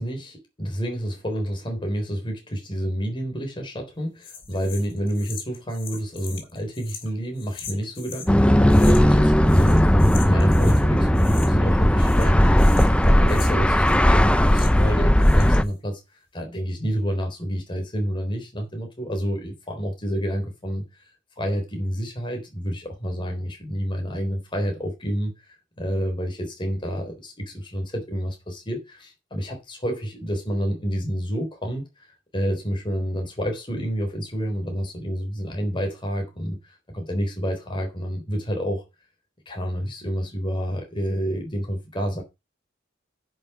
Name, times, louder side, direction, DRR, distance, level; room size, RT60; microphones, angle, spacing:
voice 1, 0.0-16.0 16.3-21.0 21.4-38.8 39.5-42.2, equal, 25° left, 3.8 m, -29 dB
sound 1, 4.2-8.3 8.7-9.2 9.5-10.9 11.1-11.7 12.0-14.9 15.2-15.7, left 6 dB, 70° left, 3.7 m, -41 dB
sound 2, 8.3-15.6, equal, 5° left, 0.6 m, -17 dB
10.5 x 6.4 x 5.7 m
head